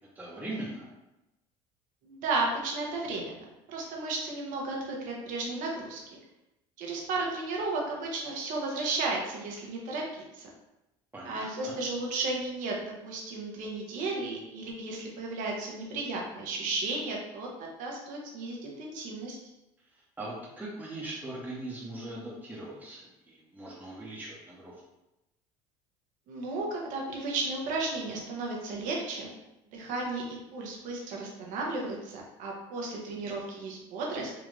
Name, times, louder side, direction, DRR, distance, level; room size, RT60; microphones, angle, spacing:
voice 1, 0.1-0.9 11.1-11.7 19.9-24.7, right 1 dB, 10° right, -7 dB, 1.0 m, -40 dB
voice 2, 2.0-3.3 3.7-6.2 6.8-10.5 11.2-19.4 26.3-29.3 29.7-34.3, right 3 dB, 65° right, -1 dB, 1.1 m, -34 dB
4.0 x 2.5 x 3.2 m, 0.96 s
supercardioid pair, 90°, 14 cm